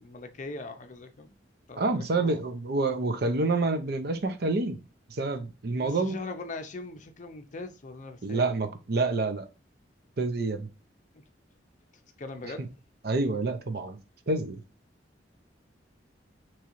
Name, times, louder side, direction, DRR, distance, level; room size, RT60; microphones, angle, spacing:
voice 1, 0.0-1.4 1.7-2.4 5.7-8.5 11.1-11.2 12.2-12.7, left 3 dB, 45° left, 0.5 m, -41 dB
voice 2, 1.8-4.8 5.1-6.2 8.2-9.5 10.2-10.7 13.0-14.0 14.3-14.6, right 3 dB, 60° right, 0.6 m, -28 dB
3.6 x 3.0 x 3.0 m
head